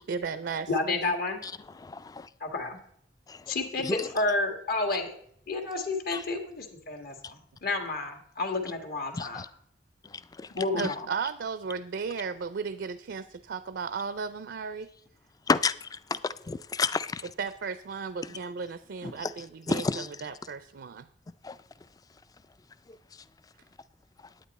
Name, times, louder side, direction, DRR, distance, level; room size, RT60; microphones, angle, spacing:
voice 1, 0.0-1.2 10.7-14.9 17.4-21.1, right 5 dB, 70° right, 0.4 m, -35 dB
voice 2, 0.7-1.4 2.4-2.8 3.5-5.1 5.5-9.4 10.5-11.1, left 3 dB, 60° left, 1.6 m, -30 dB
voice 3, 1.4-2.3 3.3-3.5 3.8-4.1 6.1-6.2 9.1-9.5 10.0-10.5 10.8-10.9 15.5-17.3 19.0-19.3 19.7-20.1 21.4-21.6 22.9-23.0, left 4 dB, 20° left, 0.3 m, -31 dB
10.0 x 8.8 x 4.1 m
head